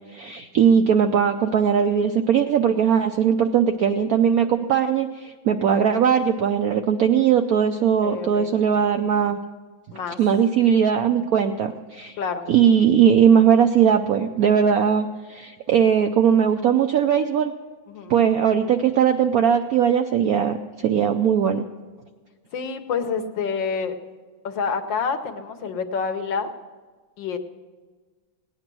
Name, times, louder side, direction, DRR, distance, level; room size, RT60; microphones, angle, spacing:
voice 1, 0.1-9.4 10.2-12.2 12.5-17.5 18.1-21.6, right 8 dB, 75° right, 6 dB, 0.8 m, -19 dB
voice 2, 8.0-8.5 9.9-10.2 12.2-12.5 17.9-18.2 22.5-24.0 24.4-26.5 27.2-27.4, left 5 dB, 70° left, 7 dB, 1.6 m, -28 dB
17.5 x 9.7 x 6.1 m, 1.4 s
omnidirectional pair, 2.2 m